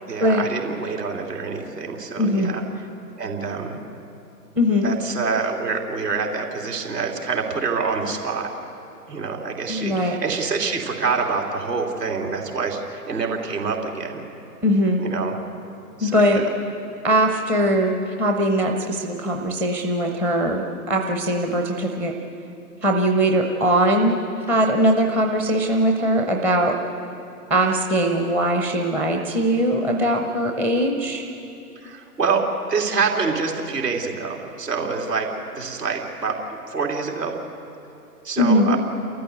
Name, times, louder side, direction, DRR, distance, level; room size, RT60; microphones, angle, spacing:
voice 1, 0.1-2.6 3.2-3.8 4.8-8.5 9.1-14.2 15.0-15.3 16.0-16.2 31.8-37.3 38.2-38.8, right 4 dB, 80° right, 0 dB, 3.4 m, -26 dB
voice 2, 2.2-2.5 4.6-4.9 9.7-10.2 14.6-15.0 16.0-16.4 17.0-22.1 22.8-24.2 24.5-26.8 27.5-31.2 38.4-38.8, equal, 5° right, 1 dB, 0.5 m, -20 dB
29.5 x 14.0 x 8.1 m, 2.8 s
figure-of-eight pair, 115°, 48 cm